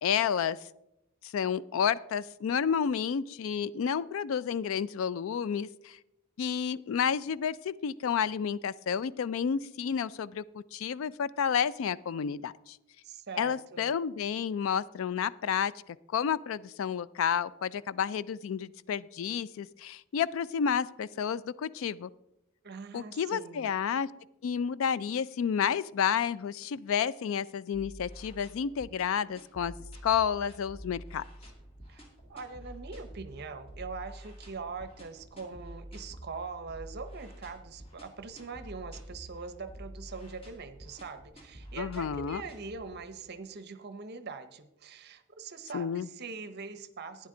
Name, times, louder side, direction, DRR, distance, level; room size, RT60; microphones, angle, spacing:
voice 1, 0.0-0.6 1.3-6.0 6.4-12.8 13.4-22.1 22.9-24.1 24.4-29.7 30.0-31.2 41.8-42.4 45.7-46.1, left 7 dB, 60° left, 19 dB, 0.3 m, -30 dB
voice 2, 13.0-14.0 22.6-23.7 31.9-32.0 32.3-47.3, right 4 dB, 45° right, 11 dB, 0.7 m, -42 dB
sound 1, 27.7-43.3, right 1 dB, 25° left, 2.1 m, -48 dB
11.5 x 9.7 x 3.8 m, 0.85 s
head